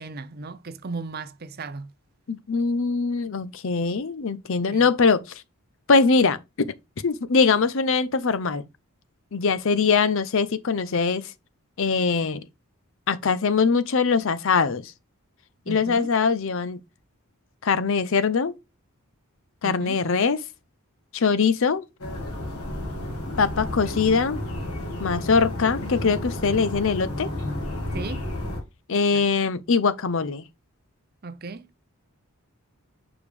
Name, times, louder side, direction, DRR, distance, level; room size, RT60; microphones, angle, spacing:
voice 1, 0.0-1.9 4.7-4.9 15.7-16.1 19.6-20.0 27.9-28.3 29.1-29.5 31.2-31.7, right 3 dB, 45° right, 0.6 m, -36 dB
voice 2, 2.3-5.2 5.9-6.7 7.0-8.6 9.3-11.2 11.8-12.4 13.1-14.9 15.7-16.8 17.6-18.5 19.6-20.4 21.1-21.8 23.4-24.4 25.0-27.3 28.9-30.4, left 5 dB, 60° left, 0.6 m, -22 dB
sound 1, 22.0-28.6, left 1 dB, 80° left, 2.0 m, -31 dB
7.1 x 4.9 x 3.3 m
head